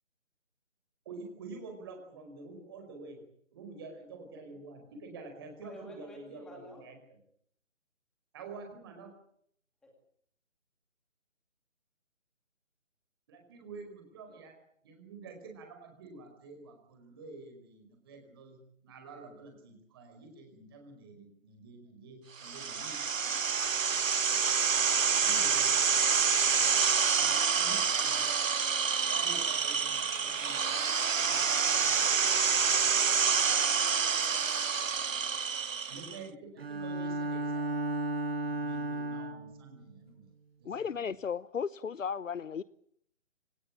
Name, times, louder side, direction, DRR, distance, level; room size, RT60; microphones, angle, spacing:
voice 1, 1.0-3.2 3.5-7.0 8.3-9.1 13.3-14.6 14.8-23.5 25.2-25.7 27.1-28.3 29.1-31.9 32.7-32.9 35.9-37.9 38.4-40.3 40.6-41.1, right 3 dB, 20° right, 5.0 m, -48 dB
voice 2, 5.6-6.8 9.8-9.9 14.3-14.4 32.0-35.9, left 1 dB, ahead, 2.5 m, -53 dB
sound 1, 22.4-36.2, right 6 dB, 75° right, 1.1 m, -28 dB
Bowed string instrument, 36.6-39.6, right 1 dB, 50° right, 1.5 m, -34 dB
voice 3, 40.6-42.6, left 6 dB, 75° left, 0.9 m, -35 dB
25.5 x 19.0 x 8.8 m
hypercardioid pair, 175°, 39 cm